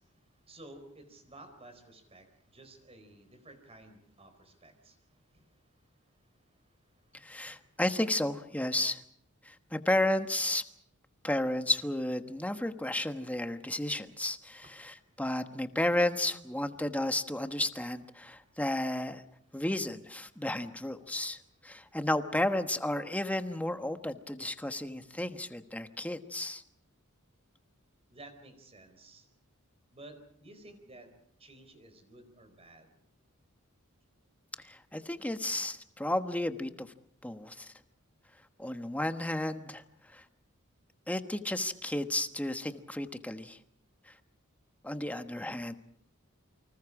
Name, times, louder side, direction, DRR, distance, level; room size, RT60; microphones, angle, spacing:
voice 1, 0.0-7.8 14.6-15.2 18.2-18.6 19.5-19.6 20.3-20.4 21.0-21.4 21.7-22.0 28.1-29.3 29.9-31.1 31.4-33.0 34.6-34.7, right 2 dB, 30° right, 7 dB, 4.4 m, -55 dB
voice 2, 7.1-9.0 9.4-10.6 11.2-19.2 19.5-26.6 34.6-36.9 37.2-37.7 38.6-40.2 41.1-43.6 44.1-44.2 44.8-45.7, left 1 dB, 5° left, 8 dB, 1.2 m, -33 dB
29.0 x 25.5 x 4.9 m, 0.67 s
head